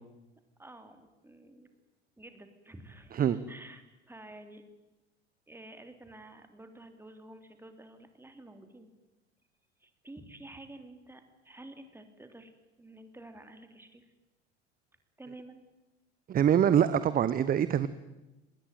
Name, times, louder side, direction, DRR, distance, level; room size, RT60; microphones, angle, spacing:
voice 1, 0.6-1.7 2.2-4.6 5.5-8.9 9.8-12.5 12.8-14.0 15.2-15.6, right 1 dB, 5° right, 7 dB, 3.4 m, -50 dB
voice 2, 16.3-17.9, right 9 dB, 25° right, 15 dB, 1.0 m, -24 dB
25.5 x 20.0 x 9.3 m, 0.98 s
figure-of-eight pair, 75°, 34 cm